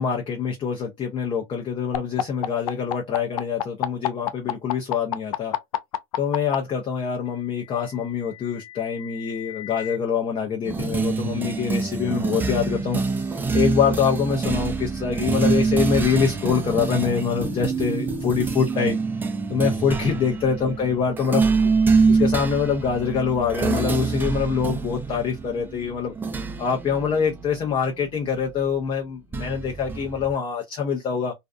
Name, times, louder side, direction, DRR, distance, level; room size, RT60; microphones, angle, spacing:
voice 1, 0.0-5.5 6.2-13.0 13.3-19.0 19.5-21.6 22.1-26.1 26.6-31.3, left 6 dB, 30° left, 0.6 m, -25 dB
sound 1, 1.9-6.6 7.7-10.0, left 12 dB, 80° left, 0.5 m, -29 dB
sound 2, 10.7-28.5 29.3-30.3, right 4 dB, 10° right, 0.4 m, -25 dB
2.5 x 2.3 x 2.4 m
hypercardioid pair, 110°, 17 cm